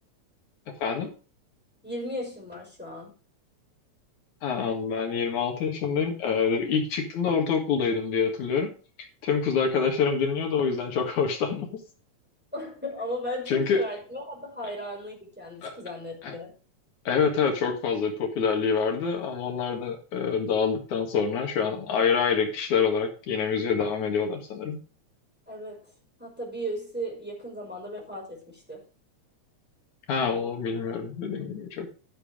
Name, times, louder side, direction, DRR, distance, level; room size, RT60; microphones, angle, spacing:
voice 1, 1.8-3.1 12.5-16.5 25.5-25.9 26.2-28.8, equal, 5° right, 5.4 m, -36 dB
voice 2, 4.4-8.7 9.2-11.7 13.5-13.8 15.6-15.7 16.2-16.3 17.0-24.8 30.1-31.9, left 6 dB, 75° left, 3.3 m, -26 dB
12.5 x 7.0 x 5.1 m
omnidirectional pair, 3.4 m